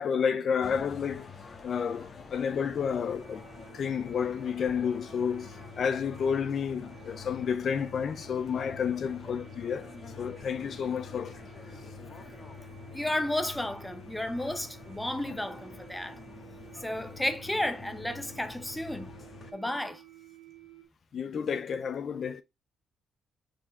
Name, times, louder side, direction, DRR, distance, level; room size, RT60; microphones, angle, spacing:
voice 1, 0.0-1.3 1.6-3.4 3.7-11.4 14.4-14.5 16.8-16.9 21.1-22.4, left 7 dB, 55° left, 0.6 m, -31 dB
sound 1, 0.6-19.5, left 5 dB, 35° left, 1.4 m, -47 dB
sound 2, 3.1-20.8, right 13 dB, 70° right, 1.1 m, -53 dB
voice 2, 12.9-16.2 16.8-19.1 19.5-20.0, left 1 dB, 5° left, 0.9 m, -32 dB
5.0 x 4.2 x 4.5 m
cardioid pair, 90°, 0 cm